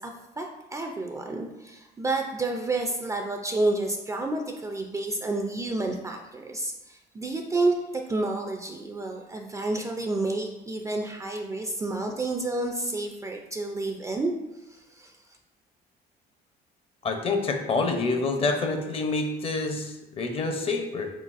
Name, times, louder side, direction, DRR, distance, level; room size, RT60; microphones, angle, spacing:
voice 1, 0.0-7.8 8.1-14.3 14.7-15.1, right 2 dB, 20° right, 2 dB, 0.3 m, -30 dB
voice 2, 17.0-21.1, left 3 dB, 35° left, 4 dB, 0.6 m, -27 dB
3.9 x 3.9 x 2.5 m, 1.0 s
cardioid pair, 110°, 17 cm